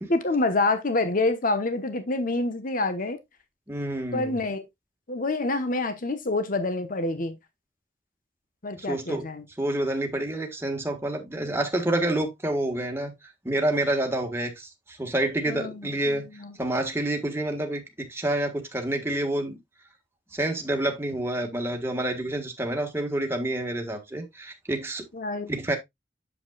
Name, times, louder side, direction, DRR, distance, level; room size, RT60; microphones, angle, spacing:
voice 1, 0.1-3.2 4.1-4.6 5.1-7.4 8.6-9.4 15.5-16.5 25.1-25.5, left 2 dB, 50° left, 1.1 m, -27 dB
voice 2, 3.7-4.4 8.7-9.2 9.6-13.1 13.4-16.3 16.6-19.6 20.3-25.0 25.5-25.8, right 1 dB, 15° right, 1.5 m, -28 dB
8.2 x 7.1 x 2.3 m
head